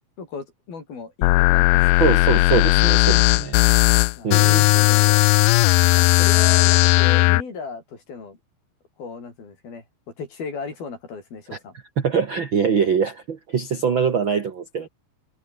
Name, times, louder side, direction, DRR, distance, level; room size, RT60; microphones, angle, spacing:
voice 1, 0.2-2.1 4.2-5.3 5.9-8.4 9.0-9.8 10.2-11.8, left 4 dB, 60° left, 8.3 m, -35 dB
sound 1, 1.2-7.4, left 20 dB, 80° left, 2.2 m, -16 dB
voice 2, 2.0-3.6 4.2-4.7 12.0-14.9, right 6 dB, 45° right, 1.6 m, -23 dB
omnidirectional pair, 4.9 m